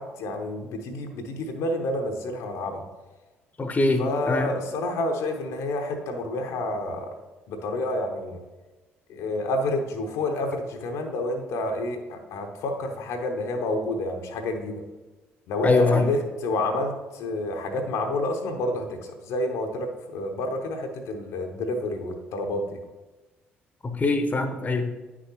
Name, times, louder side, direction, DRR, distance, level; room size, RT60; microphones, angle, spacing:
voice 1, 0.0-2.8 4.0-7.1 7.5-8.4 9.1-14.8 15.5-22.8, left 2 dB, 60° left, 4 dB, 0.8 m, -29 dB
voice 2, 3.6-4.5 15.6-16.1 23.8-24.9, left 3 dB, 25° left, 7 dB, 0.8 m, -23 dB
9.4 x 6.1 x 2.9 m, 1.2 s
figure-of-eight pair, 50°, 6 cm